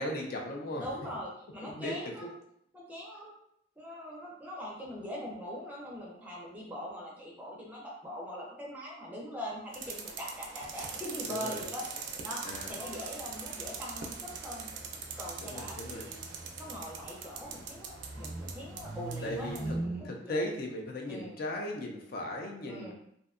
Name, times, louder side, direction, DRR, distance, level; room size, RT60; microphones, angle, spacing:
voice 1, 0.0-0.9 1.6-2.3 11.3-11.6 12.4-12.7 15.4-16.0 19.2-19.8 20.0-22.9, left 1 dB, 50° left, 0 dB, 0.4 m, -37 dB
voice 2, 0.8-2.3 2.7-3.3 3.8-11.8 12.2-12.4 12.7-14.7 15.2-16.2 16.6-20.0 20.2-20.4 21.1-21.4 22.7-22.9, equal, 10° right, -4 dB, 0.5 m, -42 dB
sound 1, 9.7-19.7, right 5 dB, 65° right, 0.4 m, -42 dB
sound 2, 12.5-20.1, right 2 dB, 10° left, 1.1 m, -43 dB
2.6 x 2.2 x 2.4 m, 0.73 s
head